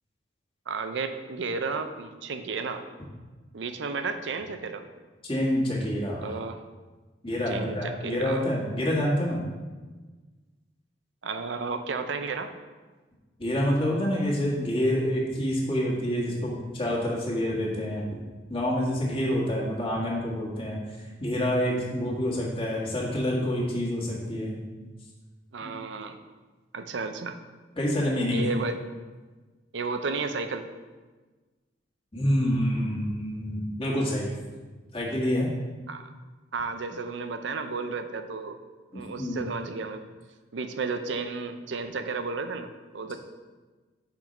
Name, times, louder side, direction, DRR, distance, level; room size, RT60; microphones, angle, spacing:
voice 1, 0.7-2.8 3.5-4.8 6.2-6.6 7.5-8.5 11.2-12.5 25.5-26.2 26.7-27.4 28.3-28.8 29.7-30.7 35.9-36.1 36.5-38.6 38.9-40.0 40.5-42.7 42.9-43.2, right 4 dB, 70° right, 8 dB, 0.5 m, -33 dB
voice 2, 5.2-6.4 7.2-9.4 13.4-18.1 18.5-24.7 25.6-25.7 27.8-28.5 32.1-34.3 34.9-35.5 38.9-39.4, equal, 30° left, -4 dB, 1.6 m, -27 dB
6.0 x 4.5 x 5.2 m, 1.3 s
head